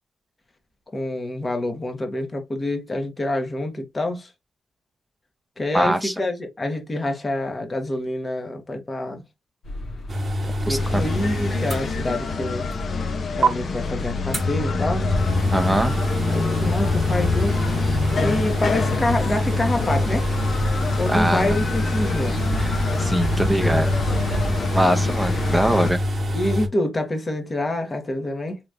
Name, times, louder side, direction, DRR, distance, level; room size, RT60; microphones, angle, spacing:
voice 1, 0.9-4.3 5.6-9.2 10.4-12.6 13.4-15.1 16.3-17.7 18.2-20.3 21.0-22.5 26.3-28.6, left 1 dB, 30° left, 1.2 m, -27 dB
voice 2, 5.7-6.1 10.7-11.0 15.5-16.0 21.1-21.6 22.6-23.9 24.7-26.0, right 1 dB, ahead, 0.6 m, -22 dB
sound 1, 9.6-24.6, left 1 dB, 80° left, 1.2 m, -33 dB
sound 2, 10.1-12.4 12.7-12.8 13.4-13.5 14.3-26.7, equal, 50° right, 0.9 m, -25 dB
sound 3, 10.8-25.9, left 4 dB, 60° left, 0.7 m, -27 dB
3.3 x 3.0 x 2.5 m
cardioid pair, 70°, 0 cm